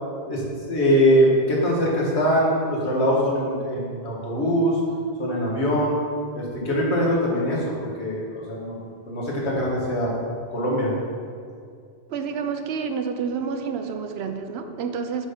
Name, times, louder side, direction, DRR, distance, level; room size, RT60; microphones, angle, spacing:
voice 1, 0.3-4.8 5.2-6.0 6.3-7.7 8.0-8.8 9.1-10.1 10.5-10.9, equal, 85° left, -4 dB, 1.8 m, -22 dB
voice 2, 12.1-15.3, right 6 dB, 75° right, 7 dB, 0.8 m, -29 dB
7.2 x 3.9 x 5.7 m, 2.2 s
omnidirectional pair, 1.1 m